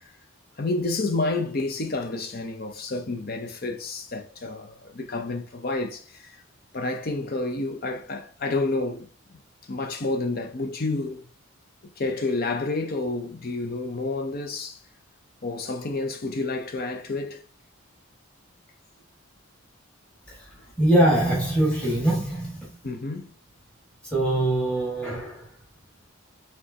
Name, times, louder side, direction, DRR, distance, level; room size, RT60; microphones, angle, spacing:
voice 1, 0.6-6.4 6.7-9.4 9.7-11.2 11.8-14.8 15.4-17.4 22.8-23.3, left 2 dB, 45° left, 0.7 m, -29 dB
voice 2, 20.8-22.6 24.1-25.4, right 1 dB, 5° left, 1.8 m, -22 dB
5.1 x 3.4 x 2.8 m
head